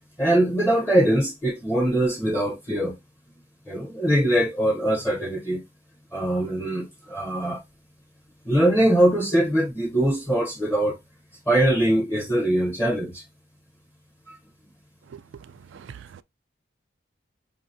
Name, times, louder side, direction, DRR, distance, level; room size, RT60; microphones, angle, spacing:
voice 1, 0.2-3.0 3.7-5.6 6.1-7.6 8.4-11.0 11.5-13.2 14.3-14.4, right 1 dB, 15° left, 0.7 m, -22 dB
voice 2, 15.7-16.2, right 7 dB, 70° right, 0.3 m, -42 dB
5.5 x 2.7 x 2.6 m
head